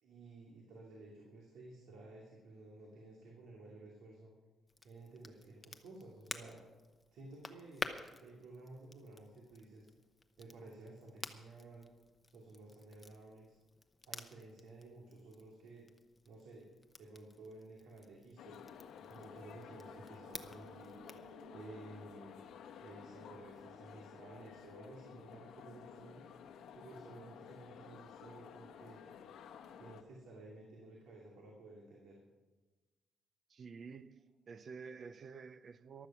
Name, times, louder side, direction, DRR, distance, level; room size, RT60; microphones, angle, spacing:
voice 1, 0.0-4.3 4.8-6.6 7.1-9.9 10.4-11.9 12.3-13.6 14.1-15.8 16.2-16.7 17.0-18.6 19.1-21.0 21.5-22.4 22.8-26.3 26.7-29.0 29.8-32.2, right 2 dB, 85° right, 2.7 m, -54 dB
Crackle, 4.7-21.3, left 3 dB, 15° left, 0.8 m, -51 dB
sound 1, 18.4-30.0, left 8 dB, 80° left, 1.1 m, -53 dB
sound 2, 18.7-24.2, right 4 dB, 70° right, 1.9 m, -62 dB
voice 2, 33.5-36.1, right 5 dB, 40° right, 0.6 m, -50 dB
15.0 x 12.0 x 6.0 m
cardioid pair, 170°, 0 cm